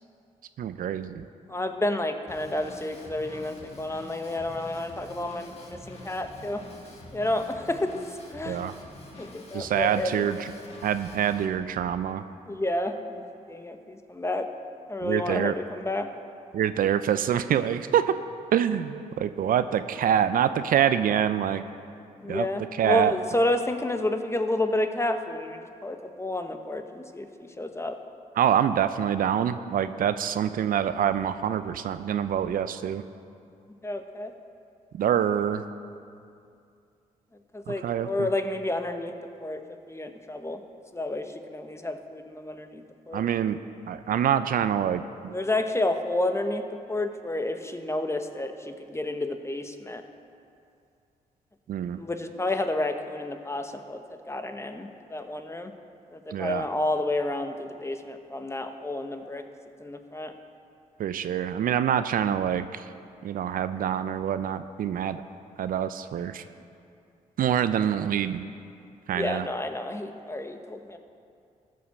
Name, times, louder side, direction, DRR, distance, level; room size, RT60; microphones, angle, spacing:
voice 1, 0.6-1.2 8.4-8.7 9.5-10.5 10.8-12.2 15.0-15.6 16.5-18.1 18.5-21.6 22.3-22.5 22.7-23.2 28.4-33.0 34.9-35.6 37.7-38.3 43.1-43.6 43.9-45.3 51.7-52.0 56.3-56.7 61.0-62.8 63.2-65.2 65.6-66.4 67.4-68.4 69.1-69.5, right 9 dB, 70° right, 12 dB, 0.5 m, -26 dB
voice 2, 1.5-6.6 7.1-7.9 8.3-8.6 9.2-10.3 12.5-13.2 13.5-14.5 14.9-16.1 22.2-28.0 33.8-34.3 37.5-39.1 39.4-39.6 39.9-40.6 40.9-43.2 45.3-46.6 46.9-50.0 51.9-54.0 54.3-55.7 56.1-59.4 59.8-60.3 69.1-71.0, left 2 dB, 20° left, 7 dB, 1.0 m, -30 dB
Drum kit / Drum, 2.3-11.5, left 1 dB, 45° left, 1.9 m, -46 dB
14.5 x 5.7 x 6.5 m, 2.5 s
supercardioid pair, 55°, 15 cm